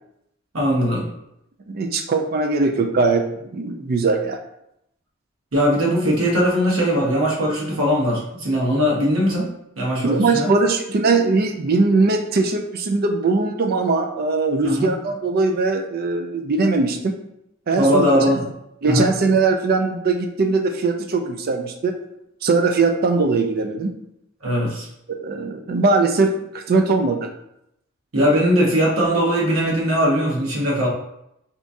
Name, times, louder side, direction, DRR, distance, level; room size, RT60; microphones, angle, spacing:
voice 1, 0.5-1.1 3.8-3.9 5.5-10.5 14.6-14.9 17.8-18.4 18.9-19.1 24.4-24.9 28.1-30.9, equal, 85° right, -3 dB, 1.0 m, -20 dB
voice 2, 1.7-4.4 10.0-17.2 17.7-18.1 18.8-22.0 22.4-23.9 25.1-27.3, right 3 dB, 50° right, 5 dB, 0.4 m, -20 dB
3.4 x 2.9 x 2.6 m, 0.80 s
head